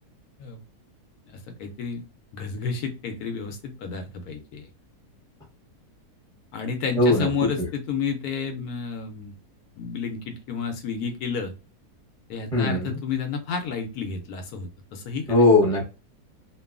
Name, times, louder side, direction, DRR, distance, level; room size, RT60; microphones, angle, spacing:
voice 1, 1.3-2.0 2.3-4.7 6.5-9.3 9.8-11.5 12.3-15.3, left 5 dB, 75° left, 6 dB, 1.0 m, -31 dB
voice 2, 7.0-7.3 7.6-7.7 12.5-13.0 15.3-15.9, left 2 dB, 5° left, -3 dB, 0.7 m, -19 dB
2.9 x 2.2 x 2.3 m, 0.30 s
omnidirectional pair, 1.7 m